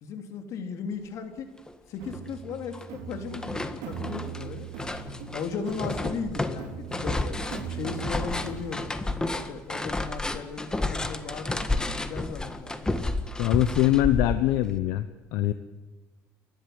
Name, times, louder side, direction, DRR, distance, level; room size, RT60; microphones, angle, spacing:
voice 1, 0.0-1.5 1.9-4.7 5.3-7.4 7.6-12.9, left 5 dB, 65° left, 5 dB, 3.2 m, -36 dB
sound 1, 1.7-1.8 2.1-2.9 3.1-14.8, left 2 dB, 10° left, 1.6 m, -31 dB
sound 2, 2.0-8.9, right 9 dB, 85° right, 3.5 m, -40 dB
voice 2, 13.4-15.1 15.3-15.5, left 15 dB, 85° left, 11 dB, 0.9 m, -23 dB
29.5 x 12.5 x 8.1 m, 1.2 s
cardioid pair, 110°, 6 cm